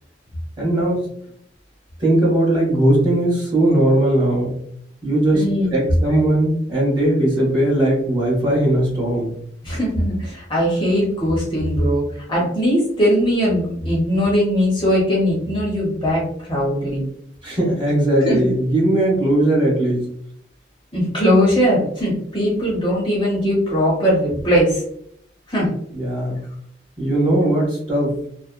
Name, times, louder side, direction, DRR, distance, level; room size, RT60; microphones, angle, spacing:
voice 1, 0.6-1.1 2.0-4.6 5.0-5.4 5.7-9.3 17.4-20.1 25.9-26.4 27.0-28.2, right 1 dB, 25° right, -5 dB, 1.1 m, -18 dB
voice 2, 5.3-5.7 9.6-17.0 18.2-18.5 20.9-24.8 25.5-25.7, equal, 25° left, -4 dB, 0.8 m, -19 dB
2.9 x 2.0 x 2.2 m, 0.68 s
head